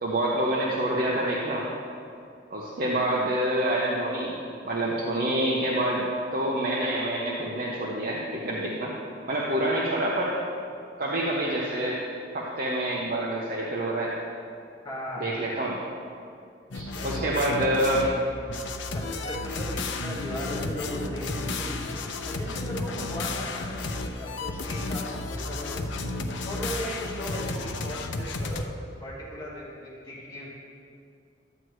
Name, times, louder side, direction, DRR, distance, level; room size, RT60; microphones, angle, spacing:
voice 1, 0.0-1.7 2.5-4.3 4.6-6.0 6.3-8.9 9.3-10.3 11.0-12.0 12.3-14.1 15.2-15.7 16.7-18.0, right 1 dB, 50° right, -4 dB, 0.9 m, -27 dB
voice 2, 14.8-15.5 17.0-18.1 18.9-25.8 26.4-30.5, left 1 dB, 25° left, -7 dB, 2.1 m, -37 dB
sound 1, 16.7-18.2 18.5-28.6, left 2 dB, 80° left, 0.6 m, -33 dB
12.5 x 7.8 x 3.1 m, 2.4 s
head